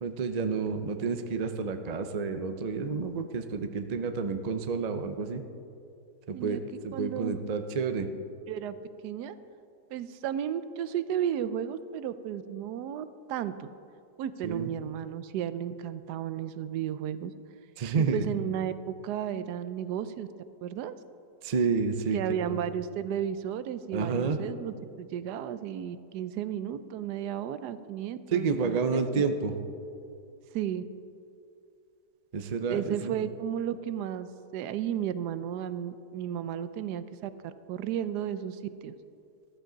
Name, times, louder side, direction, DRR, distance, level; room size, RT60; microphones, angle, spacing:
voice 1, 0.0-5.4 6.3-8.1 14.4-14.7 17.8-18.2 21.4-22.6 23.9-24.4 28.3-29.5 32.3-33.1, right 5 dB, 60° right, 7 dB, 0.4 m, -30 dB
voice 2, 6.9-7.4 8.5-8.8 9.0-9.3 9.9-13.7 14.2-17.3 18.0-20.3 20.6-20.9 22.1-29.2 30.5-30.8 32.7-34.3 34.5-38.9, right 10 dB, 85° right, 13 dB, 1.2 m, -33 dB
13.5 x 12.5 x 3.9 m, 2.5 s
omnidirectional pair, 1.7 m